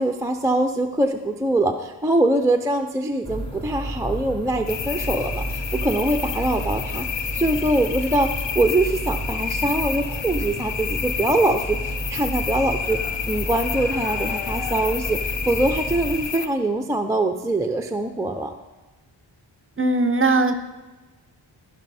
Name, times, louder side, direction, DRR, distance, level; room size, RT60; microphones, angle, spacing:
voice 1, 0.0-13.0 13.3-18.5, right 1 dB, 5° right, 5 dB, 0.4 m, -23 dB
sound 1, 3.2-16.2, right 1 dB, 10° left, 1.1 m, -31 dB
sound 2, 4.7-16.5, left 7 dB, 65° left, 0.6 m, -30 dB
voice 2, 19.8-20.5, right 3 dB, 25° right, 9 dB, 0.7 m, -19 dB
14.5 x 5.5 x 4.1 m, 1.2 s
wide cardioid pair, 110°, 49 cm